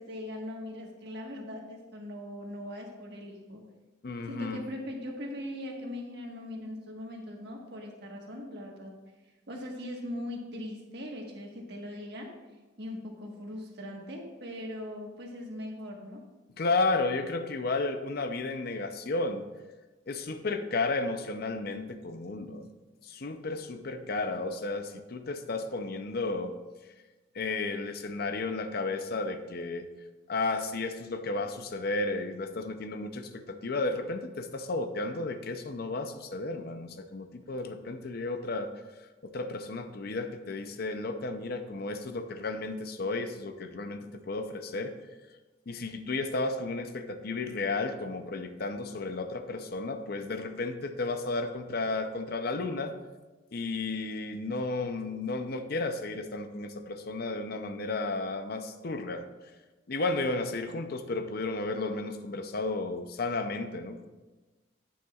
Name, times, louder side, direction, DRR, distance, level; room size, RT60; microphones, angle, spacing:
voice 1, 0.0-3.6 4.3-8.9 9.5-12.3 12.8-16.2, left 1 dB, 60° right, 1 dB, 1.5 m, -40 dB
voice 2, 4.0-4.6 16.6-19.5 20.1-22.7 23.0-26.6 27.3-29.9 30.3-38.7 39.2-44.9 45.7-52.9 53.5-59.3 59.9-64.1, left 3 dB, 50° left, 8 dB, 0.6 m, -33 dB
9.9 x 9.2 x 2.4 m, 1.2 s
head